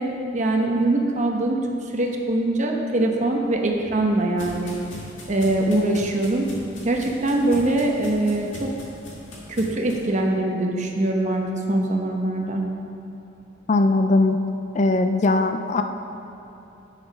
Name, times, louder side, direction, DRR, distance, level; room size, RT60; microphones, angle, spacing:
voice 1, 0.0-1.6 1.9-4.7 5.3-6.5 6.8-8.7 9.5-11.4 11.7-12.6, right 2 dB, 35° right, 1 dB, 0.9 m, -23 dB
sound 1, 3.4-10.0, equal, 70° left, 1.9 m, -41 dB
voice 2, 13.7-14.4 14.7-15.8, left 2 dB, 35° left, 7 dB, 0.4 m, -19 dB
9.1 x 7.0 x 5.1 m, 2.9 s
head